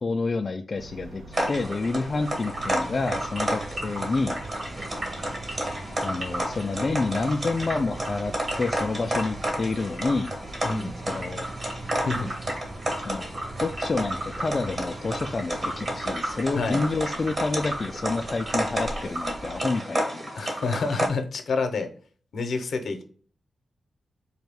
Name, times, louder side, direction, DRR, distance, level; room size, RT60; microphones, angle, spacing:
voice 1, 0.0-4.4 6.0-8.3 8.6-10.3 11.0-11.5 13.1-13.3 13.6-20.3, left 3 dB, 40° left, 4 dB, 0.3 m, -28 dB
sound 1, 0.7-19.7, right 2 dB, 75° right, 0.7 m, -44 dB
sound 2, 1.3-21.1, right 1 dB, 40° right, 1.2 m, -31 dB
sound 3, 2.5-16.1, right 2 dB, 20° right, 0.7 m, -43 dB
voice 2, 16.6-16.9 20.3-21.9 22.3-23.0, left 4 dB, 75° left, 6 dB, 0.8 m, -28 dB
4.0 x 2.3 x 3.4 m, 0.43 s
cardioid pair, 90°, 0 cm